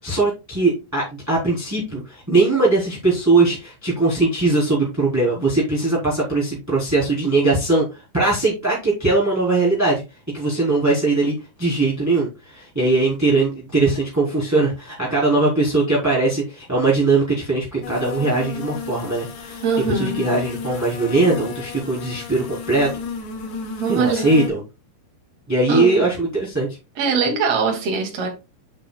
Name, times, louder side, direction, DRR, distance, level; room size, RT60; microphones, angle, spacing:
voice 1, 0.0-23.0 23.9-24.6 25.5-26.7, right 3 dB, 5° right, 2.8 m, -20 dB
sound 1, 17.8-24.5, left 6 dB, 60° left, 3.6 m, -32 dB
voice 2, 19.6-20.3 23.8-24.3 25.7-26.1 27.0-28.3, right 5 dB, 40° right, 2.7 m, -22 dB
8.9 x 7.4 x 2.3 m
omnidirectional pair, 5.6 m